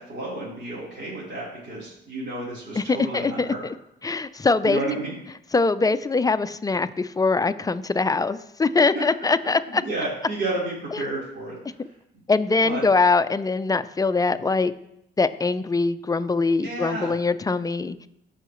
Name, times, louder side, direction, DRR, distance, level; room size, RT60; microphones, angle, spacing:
voice 1, 0.0-3.7 4.6-5.1 8.9-9.0 9.7-11.9 12.6-12.8 16.6-17.2, right 2 dB, 65° right, -8 dB, 3.8 m, -31 dB
voice 2, 2.8-3.5 4.0-4.8 5.5-9.8 10.9-11.0 12.3-14.7 15.2-18.1, left 3 dB, 20° left, 12 dB, 0.4 m, -22 dB
16.0 x 5.7 x 3.1 m, 0.82 s
cardioid pair, 90°, 20 cm